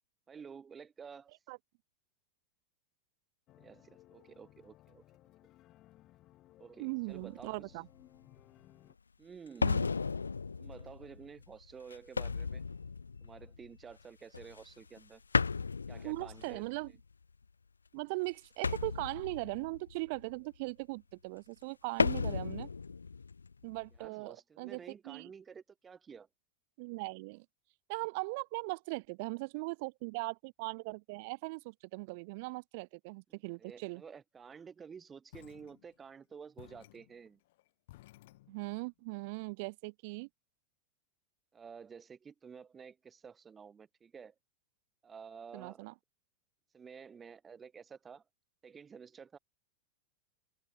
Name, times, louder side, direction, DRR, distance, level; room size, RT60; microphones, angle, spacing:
voice 1, 0.3-1.3 3.6-5.0 6.6-7.8 9.2-9.8 10.6-12.6 13.2-15.2 15.9-16.6 24.0-26.3 33.3-37.4 41.5-44.3 45.0-45.9 46.7-48.2 48.6-49.4, right 6 dB, 20° right, 1.2 m, -51 dB
sound 1, 3.5-8.9, left 15 dB, 35° left, 2.4 m, -62 dB
voice 2, 6.8-7.9 9.6-9.9 16.0-16.9 17.9-22.7 23.6-24.8 25.1-25.3 26.8-27.5 27.9-34.0 38.5-40.3 45.5-45.9, right 27 dB, 45° right, 0.4 m, -39 dB
sound 2, 7.1-7.7 8.4-8.5 9.6-13.9 14.3-15.0 15.3-16.9 18.6-20.3 22.0-24.1, left 5 dB, 75° left, 0.5 m, -35 dB
sound 3, 35.3-36.2 36.6-38.9, left 17 dB, 55° left, 7.8 m, -58 dB
figure-of-eight pair, 90°, 0 cm